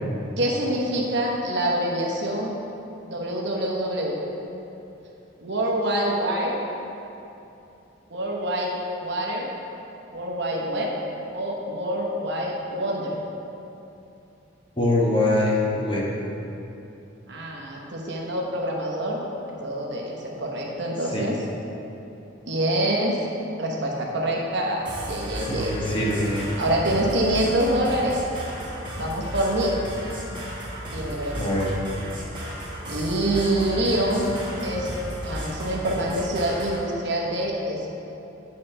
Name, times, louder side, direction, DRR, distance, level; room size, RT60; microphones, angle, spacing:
voice 1, 0.4-2.5 3.1-4.2 5.4-6.6 8.1-8.7 9.0-9.5 10.1-10.9 11.3-13.2 17.3-19.2 19.6-21.4 22.5-23.2 23.6-25.7 26.6-28.2 29.0-29.8 30.9-31.5 32.9-34.3 34.6-35.0 35.2-38.0, right 1 dB, 55° right, -2 dB, 1.1 m, -26 dB
voice 2, 14.8-16.0 21.1-21.3 25.5-26.5 31.4-31.7, left 1 dB, 25° left, -4 dB, 1.1 m, -23 dB
sound 1, 24.8-36.8, equal, 25° right, 1.4 m, -34 dB
9.8 x 4.2 x 5.5 m, 2.9 s
head